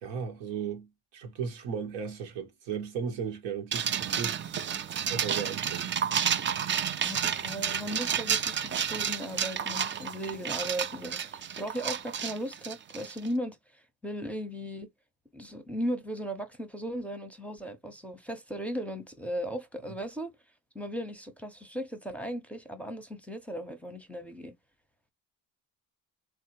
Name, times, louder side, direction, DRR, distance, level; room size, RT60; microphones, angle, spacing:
voice 1, 0.0-4.8 5.1-5.9, right 7 dB, 90° right, 1.1 m, -36 dB
sound 1, 3.7-13.3, right 8 dB, 30° right, 0.4 m, -31 dB
voice 2, 7.0-14.9 15.3-20.3 20.7-24.5, equal, 5° left, 0.7 m, -37 dB
3.3 x 2.2 x 2.9 m
supercardioid pair, 70°, 42 cm